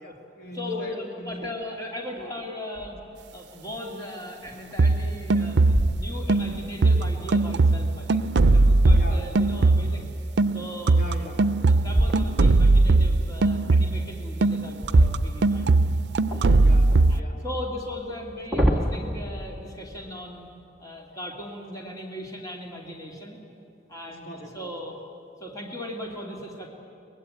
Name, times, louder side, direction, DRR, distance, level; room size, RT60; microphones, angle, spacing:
voice 1, 0.0-1.5 8.9-9.3 10.9-11.5 16.5-17.4 24.1-24.7, left 1 dB, 55° left, 1 dB, 2.8 m, -38 dB
voice 2, 0.5-3.0 3.3-8.2 8.5-10.1 10.5-11.0 11.7-15.7 16.3-16.7 17.1-20.5 20.8-23.4 23.9-24.3 24.5-25.0 25.4-26.7, left 1 dB, 20° left, -1 dB, 2.5 m, -38 dB
sound 1, 2.7-3.2 3.7-3.8 4.4-5.0 5.6-6.5 8.1-9.8 11.9-12.7 14.8-15.9 16.3-17.0 18.1-19.0, right 1 dB, ahead, 2.1 m, -27 dB
sound 2, 4.8-6.0 6.3-10.1 10.4-14.1 14.4-17.2, right 3 dB, 75° right, 0.5 m, -20 dB
23.0 x 21.5 x 8.7 m, 2.7 s
head